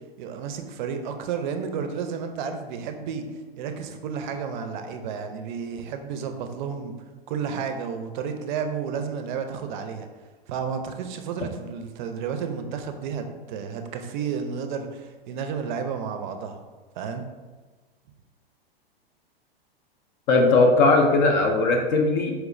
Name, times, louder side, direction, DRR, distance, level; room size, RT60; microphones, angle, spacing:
voice 1, 0.2-6.9 7.3-10.1 10.5-16.6 16.9-17.3, right 6 dB, 50° right, 6 dB, 0.4 m, -32 dB
voice 2, 20.3-22.3, left 3 dB, 50° left, 2 dB, 0.5 m, -19 dB
4.3 x 2.0 x 2.5 m, 1.3 s
hypercardioid pair, 105°, 31 cm